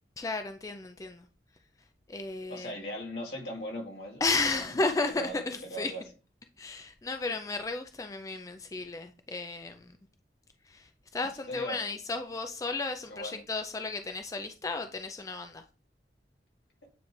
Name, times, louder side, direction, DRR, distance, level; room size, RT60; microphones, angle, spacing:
voice 1, 0.2-1.3 2.1-2.7 4.2-5.9 6.6-9.9 10.7-15.6, left 3 dB, 20° left, 0.4 m, -33 dB
voice 2, 2.5-4.2 4.5-6.0 11.5-11.8 13.1-13.4, equal, 70° left, 2.2 m, -39 dB
9.3 x 3.2 x 3.1 m
head